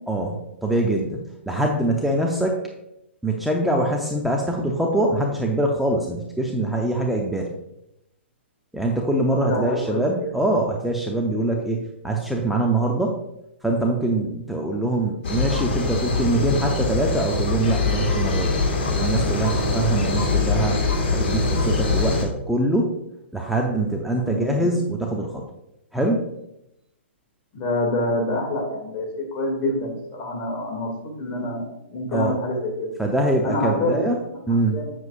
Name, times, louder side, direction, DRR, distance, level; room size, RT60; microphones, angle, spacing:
voice 1, 0.1-2.6 3.2-7.5 8.7-13.2 13.6-18.6 18.9-23.0 23.3-25.4 25.9-26.3 32.1-32.4 33.0-34.8, right 1 dB, ahead, 0 dB, 0.7 m, -24 dB
voice 2, 9.3-10.0 24.2-24.6 27.5-30.9 31.2-32.9 33.4-34.2 34.7-34.9, left 1 dB, 35° left, 0 dB, 2.4 m, -26 dB
sound 1, 15.2-22.2, left 3 dB, 50° left, 2.0 m, -23 dB
7.8 x 7.2 x 2.6 m, 0.83 s
figure-of-eight pair, 120°, 7 cm